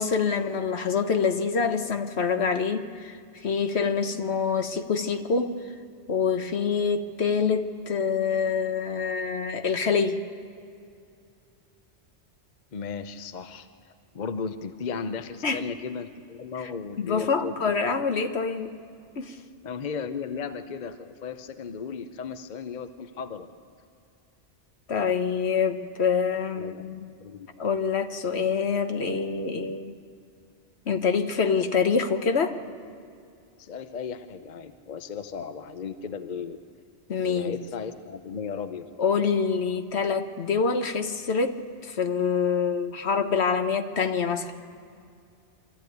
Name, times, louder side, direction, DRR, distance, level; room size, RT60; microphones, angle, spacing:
voice 1, 0.0-5.5 6.1-10.2 15.4-15.6 17.0-18.8 19.1-19.4 24.9-27.1 27.6-30.0 30.9-32.6 37.1-37.6 39.0-44.5, left 5 dB, 70° left, 7 dB, 1.3 m, -26 dB
voice 2, 12.7-17.7 19.6-23.5 26.6-26.8 27.2-27.5 33.6-36.6 37.2-38.9, left 6 dB, 45° left, 9 dB, 0.8 m, -35 dB
25.0 x 13.5 x 9.3 m, 2.5 s
omnidirectional pair, 1.2 m